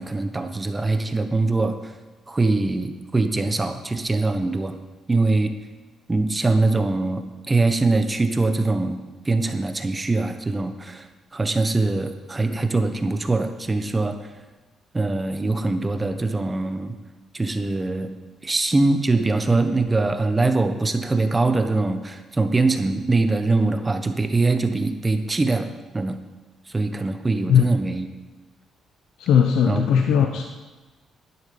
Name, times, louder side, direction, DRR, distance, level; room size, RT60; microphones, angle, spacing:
voice 1, 0.0-1.9 2.3-4.7 5.1-5.5 6.1-14.2 14.9-16.9 17.3-18.1 18.4-25.7 25.9-26.2 26.7-28.1 29.6-29.8, right 3 dB, 20° right, 7 dB, 1.1 m, -23 dB
voice 2, 29.2-30.5, left 8 dB, 85° left, 4 dB, 0.8 m, -18 dB
11.5 x 10.0 x 5.3 m, 1.2 s
cardioid pair, 90°, 0 cm